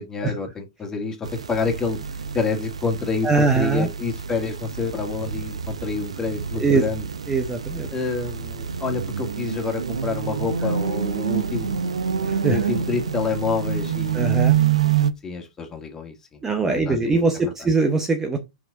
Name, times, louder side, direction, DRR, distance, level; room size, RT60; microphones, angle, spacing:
voice 1, 0.0-2.0 2.3-7.1 7.9-11.9 12.5-14.4 15.2-16.4 16.7-17.5, left 4 dB, 20° left, 2.0 m, -28 dB
sound 1, 1.2-15.1, right 8 dB, 85° right, 0.7 m, -27 dB
voice 2, 3.2-3.9 6.6-6.8 7.3-7.9 12.3-12.6 14.1-14.5 16.4-18.4, right 3 dB, 15° right, 0.9 m, -21 dB
5.7 x 4.8 x 3.9 m
hypercardioid pair, 120°, 3 cm